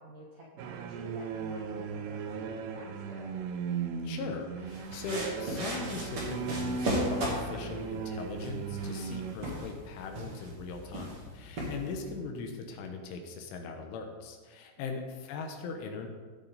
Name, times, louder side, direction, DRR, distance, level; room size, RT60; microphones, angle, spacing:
voice 1, 0.0-3.4 14.8-15.0, right 1 dB, 65° right, -3 dB, 2.0 m, -50 dB
sound 1, 0.6-9.3, right 5 dB, 80° right, 2.4 m, -37 dB
voice 2, 4.0-16.1, left 4 dB, 75° left, 4 dB, 3.4 m, -40 dB
sound 2, 4.7-12.2, equal, 35° right, 2.4 m, -37 dB
16.5 x 9.0 x 4.1 m, 1.5 s
omnidirectional pair, 5.9 m